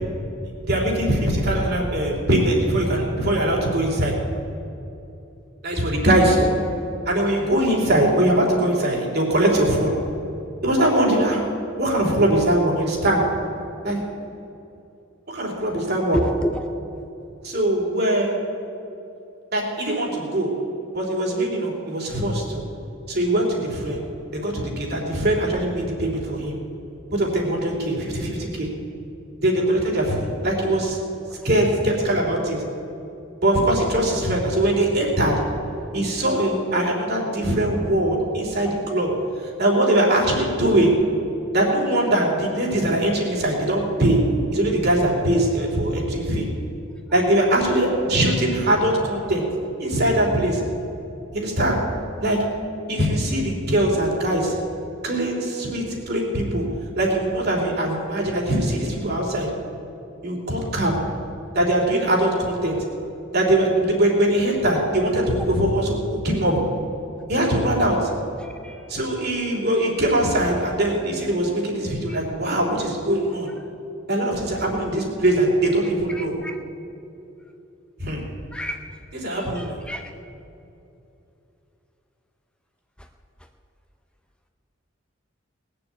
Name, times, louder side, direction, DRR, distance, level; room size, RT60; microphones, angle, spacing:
voice 1, 0.6-4.1 5.6-6.5 7.1-9.9 10.6-11.4 11.8-13.2 13.8-14.0 15.3-16.2 17.4-18.4 19.5-20.5 20.9-22.6 23.1-24.0 24.3-26.6 27.1-28.7 29.4-31.0 31.4-32.6 33.4-35.4 35.9-39.1 39.6-41.0 41.5-44.2 44.5-46.5 47.1-49.5 49.8-50.6 51.3-51.8 52.2-52.4 52.9-54.5 55.0-56.6 57.0-59.5 60.2-60.9 61.5-62.8 63.3-66.6 67.3-68.1 68.9-73.5 74.1-76.3 78.0-78.2 79.2-79.8, right 1 dB, 55° right, -1 dB, 3.4 m, -21 dB
voice 2, 16.1-16.7 31.3-31.4 38.6-38.7 47.1-47.2 68.4-68.9 72.1-72.2 76.1-76.6 78.5-78.8 79.3-80.0 83.0-83.1, equal, 5° left, 4 dB, 0.6 m, -30 dB
19.0 x 6.9 x 8.4 m, 2.8 s
head